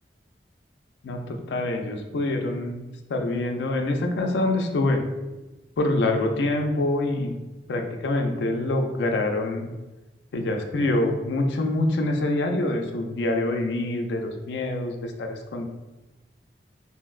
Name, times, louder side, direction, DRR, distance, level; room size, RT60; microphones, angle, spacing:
voice 1, 1.0-5.0 5.8-7.3 7.7-9.7 10.3-15.6, left 2 dB, 80° left, 4 dB, 0.4 m, -25 dB
3.8 x 2.0 x 2.3 m, 1.1 s
head